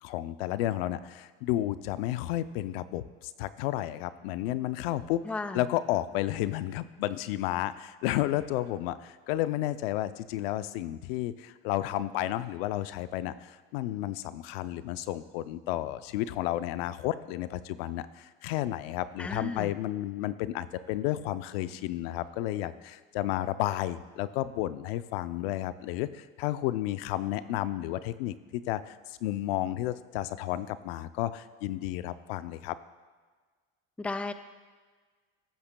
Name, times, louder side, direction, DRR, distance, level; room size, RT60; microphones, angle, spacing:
voice 1, 0.0-5.2 5.5-32.8, left 14 dB, 85° left, 14 dB, 0.5 m, -32 dB
voice 2, 5.2-5.7 19.2-19.7 34.0-34.3, left 3 dB, 5° left, 10 dB, 0.4 m, -34 dB
17.5 x 8.6 x 2.2 m, 1.5 s
supercardioid pair, 100°, 29 cm